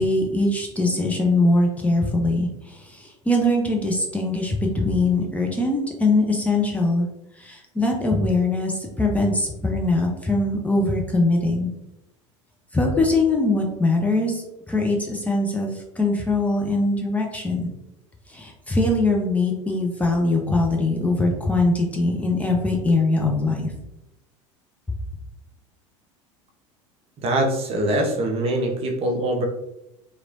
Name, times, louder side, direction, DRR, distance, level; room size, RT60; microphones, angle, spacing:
voice 1, 0.0-7.1 7.4-11.7 12.7-17.7 18.3-23.7, left 2 dB, 10° left, 0 dB, 0.6 m, -22 dB
voice 2, 27.2-29.5, right 1 dB, 35° right, 2 dB, 0.7 m, -23 dB
2.9 x 2.9 x 2.5 m, 0.90 s
figure-of-eight pair, 70°, 16 cm